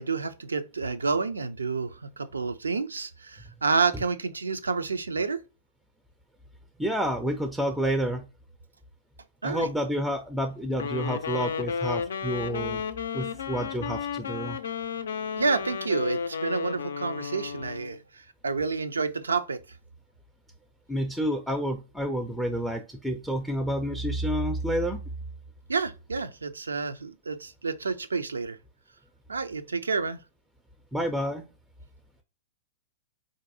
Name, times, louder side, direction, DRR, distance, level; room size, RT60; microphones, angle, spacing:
voice 1, 0.0-5.4 9.4-9.7 15.4-18.0 18.4-19.6 25.7-28.6 29.3-30.2, right 4 dB, 90° right, 0.4 m, -29 dB
voice 2, 6.8-8.2 9.4-12.8 13.1-14.6 20.9-25.0 30.9-31.4, equal, ahead, 0.4 m, -29 dB
Wind instrument woodwind instrument, 10.7-18.0, left 6 dB, 75° left, 0.4 m, -33 dB
4.0 x 2.5 x 2.5 m
hypercardioid pair, 110°, 0 cm